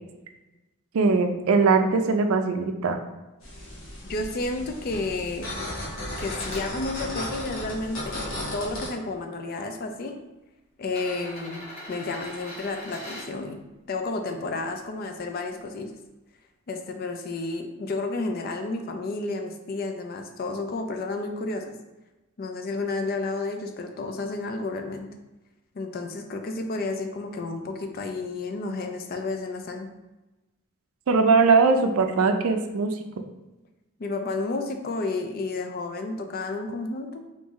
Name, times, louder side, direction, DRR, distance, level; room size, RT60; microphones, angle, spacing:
voice 1, 0.9-3.0 31.1-33.0, right 4 dB, 80° right, 6 dB, 0.4 m, -20 dB
sound 1, 3.4-8.9, left 1 dB, 70° left, 1.1 m, -35 dB
voice 2, 4.1-5.5 6.2-10.1 10.8-13.6 13.9-15.9 16.7-21.6 22.4-25.1 25.7-29.9 34.0-37.2, left 3 dB, 45° left, 5 dB, 0.4 m, -31 dB
sound 2, 6.1-6.7 7.4-8.4 9.4-9.5 10.8-13.3 15.2-15.3, left 1 dB, 30° left, 0.9 m, -41 dB
3.7 x 2.6 x 3.1 m, 1.1 s
head